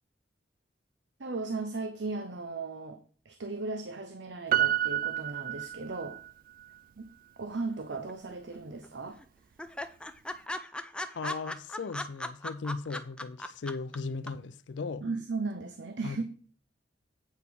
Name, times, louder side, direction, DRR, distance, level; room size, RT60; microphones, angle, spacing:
voice 1, 1.2-3.0 3.2-6.2 7.0-7.1 7.4-9.2 15.0-16.2, right 3 dB, 80° right, 0.7 m, -36 dB
Piano, 4.5-6.3 6.6-6.7, right 11 dB, 50° right, 0.3 m, -29 dB
sound 1, 7.9-8.6 8.8-8.9 9.2-9.3 9.6-14.0 14.3-14.4, left 1 dB, 5° left, 0.5 m, -37 dB
voice 2, 11.1-15.0 16.0-16.2, left 4 dB, 85° left, 0.4 m, -37 dB
8.0 x 4.8 x 5.3 m
head